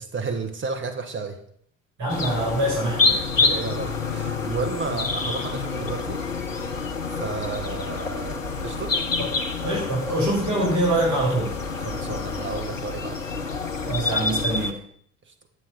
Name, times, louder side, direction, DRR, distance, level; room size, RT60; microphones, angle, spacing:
voice 1, 0.0-1.4 3.1-6.2 7.1-9.0 11.7-13.2 15.2-15.3, right 4 dB, 30° right, 6 dB, 1.7 m, -32 dB
voice 2, 2.0-3.2 9.2-9.3 9.6-11.5 13.9-14.8, right 1 dB, 50° right, -3 dB, 5.9 m, -24 dB
sound 1, 2.1-14.7, left 4 dB, 90° left, 0.9 m, -27 dB
11.5 x 7.5 x 7.0 m, 0.65 s
figure-of-eight pair, 60°, 38 cm